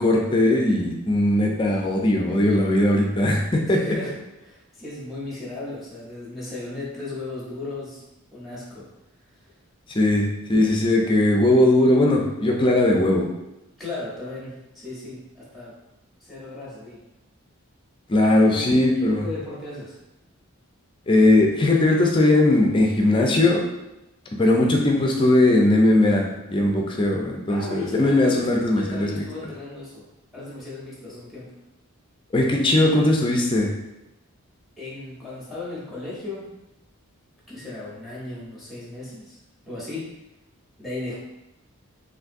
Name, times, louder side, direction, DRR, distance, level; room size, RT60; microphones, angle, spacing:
voice 1, 0.0-3.9 9.9-13.3 18.1-19.2 21.1-23.6 24.4-29.2 32.3-33.7, left 1 dB, 25° left, 0 dB, 0.4 m, -19 dB
voice 2, 3.7-4.1 4.4-8.0 8.3-8.9 13.8-15.7 16.2-17.0 18.3-18.7 19.1-20.0 27.5-31.6 34.8-36.5 37.5-39.4 39.6-40.1 40.8-41.1, left 2 dB, ahead, -7 dB, 0.8 m, -36 dB
3.5 x 2.5 x 2.5 m, 0.93 s
head